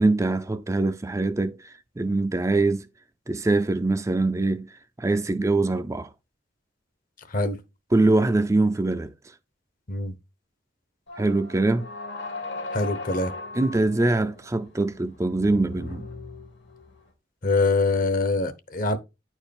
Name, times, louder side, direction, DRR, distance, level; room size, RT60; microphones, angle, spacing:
voice 1, 0.0-2.9 3.3-4.7 5.0-6.1 7.9-9.1 11.2-11.9 13.5-16.1, right 2 dB, 15° right, 0.4 m, -23 dB
sound 1, 11.1-17.1, left 3 dB, 70° left, 1.8 m, -38 dB
voice 2, 12.7-13.3 17.4-19.0, left 3 dB, 45° left, 0.9 m, -24 dB
9.7 x 4.5 x 3.5 m
head